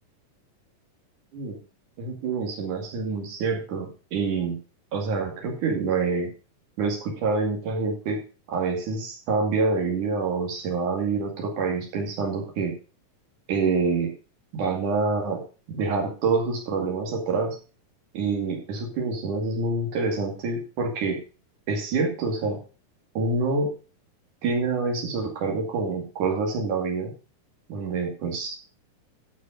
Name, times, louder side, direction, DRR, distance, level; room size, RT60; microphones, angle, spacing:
voice 1, 2.0-4.6 4.9-6.3 6.8-8.2 8.5-12.7 13.5-14.1 14.5-15.4 15.7-17.6 18.1-21.2 21.7-22.6 23.2-23.7 24.4-27.1 27.7-28.6, right 4 dB, 65° right, 0 dB, 3.7 m, -26 dB
13.5 x 5.6 x 5.1 m, 0.36 s
omnidirectional pair, 4.0 m